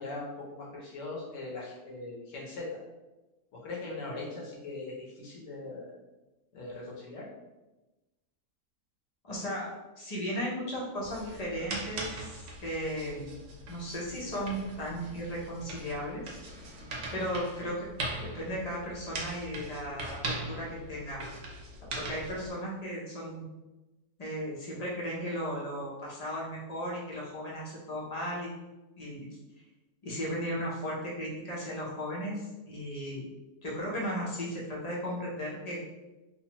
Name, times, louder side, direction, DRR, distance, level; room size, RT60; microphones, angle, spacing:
voice 1, 0.0-2.7 3.5-5.9 6.5-7.3, left 2 dB, 60° left, -3 dB, 1.0 m, -40 dB
voice 2, 9.2-12.3 12.6-13.4 13.7-16.4 17.1-17.9 18.2-21.2 21.9-23.5 24.2-28.5 29.0-29.3 30.0-33.2 33.6-35.8, equal, 40° left, -6 dB, 0.5 m, -36 dB
sound 1, 11.0-22.5, right 2 dB, 65° right, 0.9 m, -41 dB
3.0 x 2.2 x 2.9 m, 1.1 s
omnidirectional pair, 1.7 m